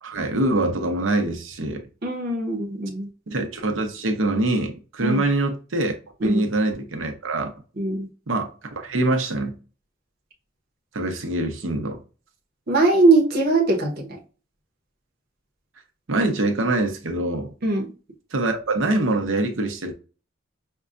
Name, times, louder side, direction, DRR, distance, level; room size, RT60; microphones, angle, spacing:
voice 1, 0.0-1.9 3.3-7.5 8.3-9.5 10.9-12.0 16.1-17.5 18.3-19.9, right 2 dB, 85° right, 0.8 m, -24 dB
voice 2, 2.0-3.1 5.0-5.2 6.2-6.4 7.8-8.1 12.7-14.2 17.6-17.9, right 2 dB, 55° right, 0.9 m, -21 dB
5.3 x 2.2 x 2.5 m
head